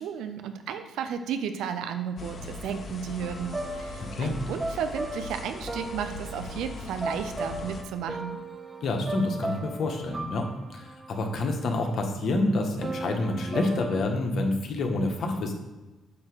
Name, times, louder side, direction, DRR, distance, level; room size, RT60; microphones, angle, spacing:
voice 1, 0.0-8.4, right 7 dB, 85° right, 8 dB, 0.6 m, -33 dB
sound 1, 2.2-7.8, left 3 dB, 45° left, 0.9 m, -40 dB
sound 2, 3.2-12.0 12.8-14.0, right 2 dB, 30° right, 0.8 m, -37 dB
voice 2, 4.0-4.3 8.8-10.5 10.7-15.5, left 2 dB, 60° left, 3 dB, 1.2 m, -28 dB
8.6 x 2.9 x 6.3 m, 1.1 s
cardioid pair, 90°, 0 cm